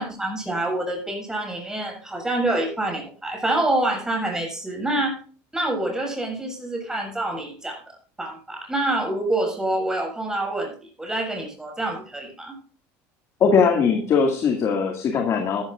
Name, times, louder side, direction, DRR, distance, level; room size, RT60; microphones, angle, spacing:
voice 1, 0.0-5.2 5.5-12.6, right 1 dB, 10° right, 1 dB, 7.1 m, -27 dB
voice 2, 13.4-15.6, left 5 dB, 45° left, 3 dB, 2.2 m, -20 dB
14.0 x 13.5 x 2.6 m, 0.42 s
supercardioid pair, 115°, 7 cm